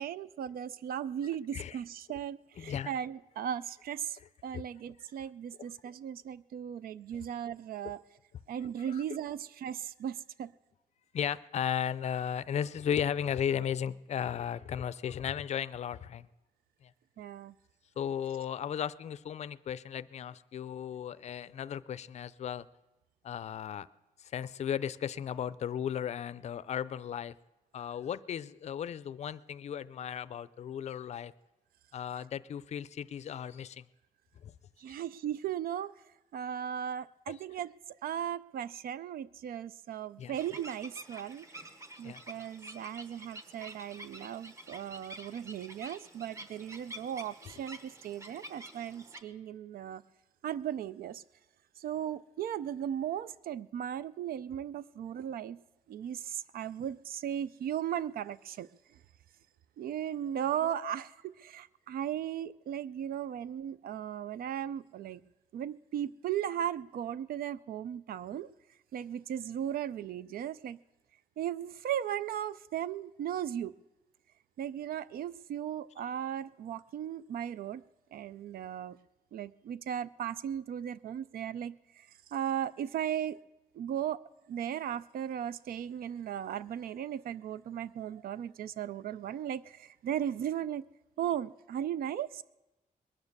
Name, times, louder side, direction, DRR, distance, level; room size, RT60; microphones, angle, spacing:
voice 1, 0.0-8.0 8.5-10.5 17.2-17.5 34.8-35.9 36.3-37.7 38.0-41.5 42.0-50.0 50.4-51.2 51.8-55.6 55.9-58.7 59.8-65.2 65.5-68.5 68.9-70.8 71.4-73.7 74.6-77.8 78.1-79.0 79.3-83.4 83.7-84.2 84.5-90.8 91.2-92.4, right 10 dB, 90° right, 17 dB, 0.4 m, -37 dB
voice 2, 2.6-2.9 4.5-4.6 7.1-7.3 8.8-9.0 11.1-16.3 16.8-16.9 18.0-22.7 23.2-23.9 24.2-27.3 27.7-31.3 31.9-33.8 34.4-34.5 37.3-37.4 40.2-40.4 42.0-42.2 47.4-47.5 60.6-61.0, left 9 dB, 50° left, 16 dB, 0.4 m, -35 dB
sound 1, 40.3-49.2, right 1 dB, 20° right, 1.0 m, -49 dB
21.0 x 9.6 x 6.6 m, 1.0 s
wide cardioid pair, 170°, 15 cm